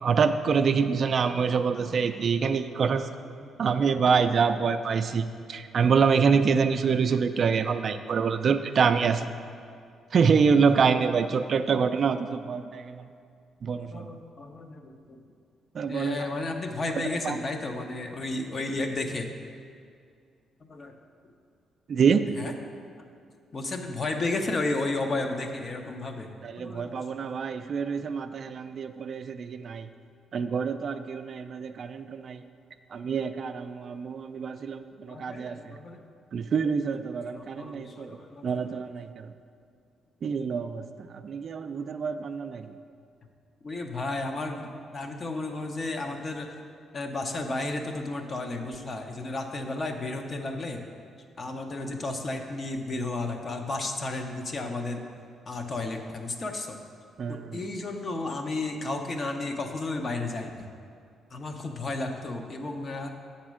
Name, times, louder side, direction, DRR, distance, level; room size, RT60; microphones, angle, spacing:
voice 1, 0.0-3.1 3.6-9.3 10.1-13.1 13.6-14.1 15.7-16.2 17.2-17.4 21.9-22.3 26.4-29.9 30.3-32.4 32.9-35.7 36.3-38.2 38.4-39.3 40.2-40.8 41.1-42.6 57.2-57.6, right 6 dB, 50° right, 9 dB, 0.3 m, -26 dB
voice 2, 1.7-2.3 3.4-3.7 13.7-15.2 15.9-19.3 20.6-21.0 22.3-22.5 23.5-27.3 35.1-36.0 37.3-38.8 43.6-46.5 46.9-50.9 51.4-55.0 55.5-56.8 57.3-60.7 61.3-63.1, left 2 dB, 40° left, 4 dB, 0.8 m, -33 dB
8.0 x 4.3 x 6.2 m, 2.3 s
cardioid pair, 90°, 0 cm